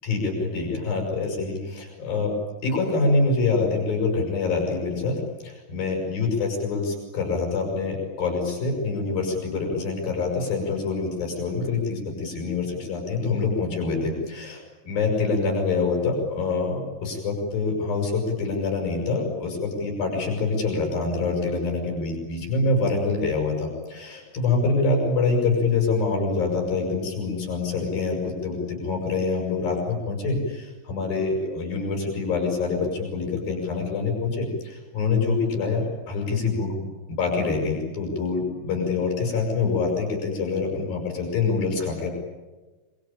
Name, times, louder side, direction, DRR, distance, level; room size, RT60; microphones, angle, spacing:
voice 1, 0.0-2.3 2.6-5.2 5.4-36.8 37.1-42.1, left 4 dB, 90° left, 1 dB, 8.6 m, -25 dB
26.5 x 25.0 x 9.0 m, 1.3 s
omnidirectional pair, 4.0 m